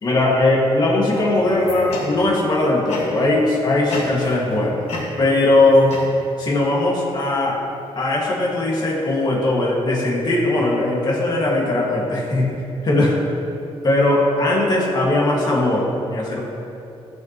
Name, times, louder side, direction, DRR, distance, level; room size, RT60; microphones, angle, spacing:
voice 1, 0.0-4.8 5.2-5.9 6.4-7.6 8.0-12.6 12.8-13.1 13.8-16.4, left 2 dB, 40° left, -4 dB, 1.8 m, -19 dB
sound 1, 1.1-2.4 2.9-3.4 3.9-4.6 4.9-6.5, left 2 dB, 75° left, 2.0 m, -32 dB
15.0 x 5.7 x 3.0 m, 2.8 s
wide cardioid pair, 160°, 11 cm